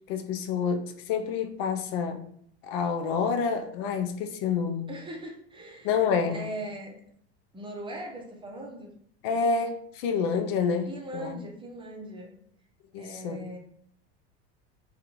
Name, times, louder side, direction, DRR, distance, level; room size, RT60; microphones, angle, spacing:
voice 1, 0.1-2.2 2.6-4.9 5.8-6.4 9.2-11.4 12.9-13.4, left 6 dB, 70° left, 0.5 m, -28 dB
voice 2, 4.9-7.0 7.5-9.0 10.9-12.4 13.0-13.6, right 1 dB, 15° right, 0.7 m, -40 dB
2.4 x 2.4 x 2.9 m
hypercardioid pair, 100°, 31 cm